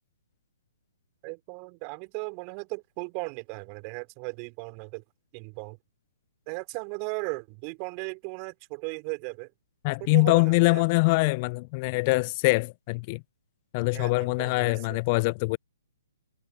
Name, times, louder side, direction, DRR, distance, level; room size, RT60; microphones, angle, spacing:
voice 1, 1.2-5.0 5.3-5.8 6.5-9.5 10.0-10.8 13.9-15.0, right 40 dB or more, 30° right, 4.8 m, -37 dB
voice 2, 9.8-13.2 13.7-15.6, left 27 dB, 35° left, 0.4 m, -24 dB
figure-of-eight pair, 125°, 0 cm